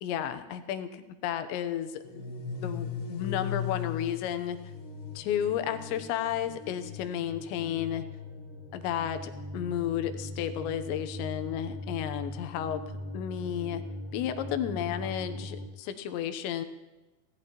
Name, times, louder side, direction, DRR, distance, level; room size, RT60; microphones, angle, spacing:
voice 1, 0.0-2.0 2.6-4.6 5.2-8.0 8.7-12.8 13.1-13.8 14.1-16.7, left 10 dB, 85° left, 9 dB, 3.1 m, -32 dB
sound 1, 2.0-15.7, left 4 dB, 55° left, 3.2 m, -39 dB
25.5 x 17.0 x 3.0 m, 1.1 s
omnidirectional pair, 5.1 m